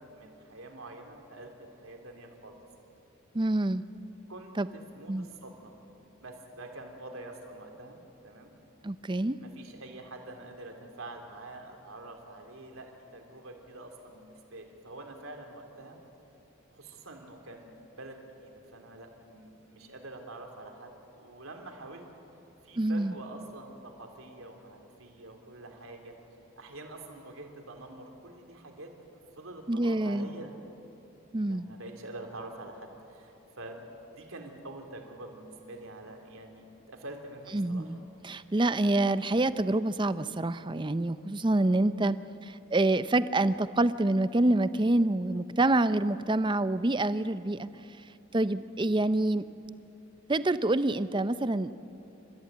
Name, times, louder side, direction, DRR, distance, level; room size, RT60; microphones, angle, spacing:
voice 1, 0.0-2.6 4.3-5.7 6.2-8.0 8.2-8.5 9.4-16.0 16.7-20.9 21.2-22.0 22.6-26.2 26.6-30.6 31.5-38.0, right 2 dB, 80° right, 3 dB, 3.1 m, -46 dB
voice 2, 3.3-3.8 4.6-4.7 5.1-5.3 8.8-9.4 22.8-23.1 29.7-30.3 31.3-31.7 37.5-42.2 42.4-47.7 48.3-49.5 50.3-51.7, right 2 dB, 20° right, 14 dB, 0.5 m, -27 dB
30.0 x 14.5 x 9.3 m, 2.9 s
head